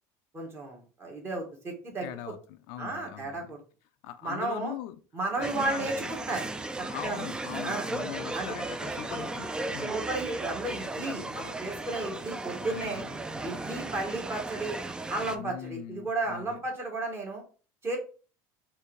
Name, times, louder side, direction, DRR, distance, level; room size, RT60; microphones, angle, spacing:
voice 1, 0.3-2.3 2.8-3.6 4.2-4.7 5.1-6.5 6.8-7.3 7.6-7.9 8.3-8.5 9.9-13.1 13.4-14.8 15.1-17.4 17.8-18.0, right 2 dB, 30° right, 1.4 m, -33 dB
voice 2, 2.0-3.5 4.0-5.0 5.4-6.1 6.9-10.0 11.0-11.4 12.6-13.2 15.3-16.6, left 13 dB, 75° left, 0.4 m, -41 dB
sound 1, 5.4-15.4, right 2 dB, 10° right, 0.3 m, -36 dB
4.4 x 2.6 x 3.2 m
supercardioid pair, 125°, 9 cm